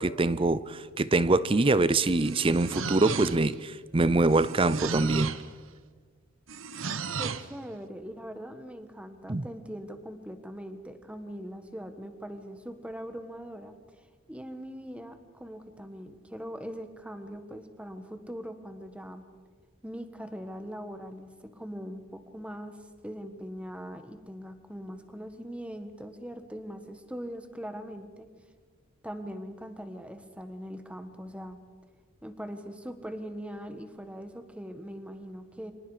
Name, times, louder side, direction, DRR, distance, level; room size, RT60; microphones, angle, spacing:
voice 1, 0.0-5.4 9.3-9.5, right 2 dB, 25° right, 16 dB, 0.6 m, -24 dB
sound 1, 2.0-3.6 4.3-5.5 6.5-7.5, right 5 dB, 85° right, 1.0 m, -35 dB
voice 2, 7.2-13.7 14.3-19.2 19.8-22.8 23.0-28.3 29.0-31.6 32.2-35.7, equal, 5° right, 8 dB, 1.4 m, -41 dB
29.5 x 25.5 x 5.0 m, 1.5 s
head